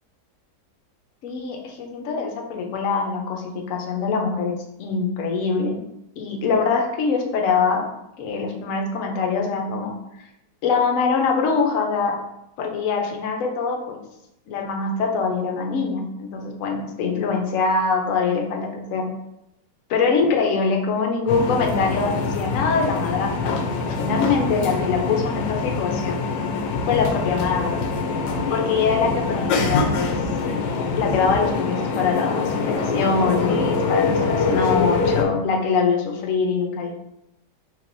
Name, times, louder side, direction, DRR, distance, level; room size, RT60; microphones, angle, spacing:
voice 1, 1.2-5.8 6.2-7.9 8.2-9.9 10.6-12.2 12.6-14.0 14.5-19.1 19.9-26.2 26.9-27.8 28.5-30.1 31.0-37.0, left 5 dB, 60° left, 2 dB, 0.9 m, -23 dB
sound 1, 21.3-35.2, left 4 dB, 80° left, 1.2 m, -24 dB
sound 2, 23.4-35.0, right 1 dB, 70° right, 1.8 m, -40 dB
4.9 x 2.9 x 2.6 m, 0.85 s
omnidirectional pair, 1.8 m